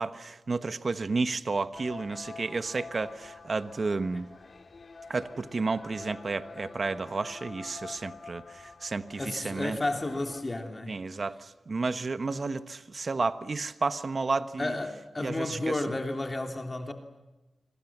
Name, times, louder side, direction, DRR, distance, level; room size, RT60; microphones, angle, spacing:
voice 1, 0.0-4.2 5.1-9.8 10.9-14.7 15.2-15.7, right 3 dB, 45° right, 1.2 m, -31 dB
sound 1, 1.7-10.4, left 4 dB, 50° left, 2.2 m, -47 dB
voice 2, 9.2-11.0 14.6-16.9, left 2 dB, 25° left, 3.0 m, -32 dB
25.5 x 24.0 x 7.4 m
wide cardioid pair, 85°, 0 cm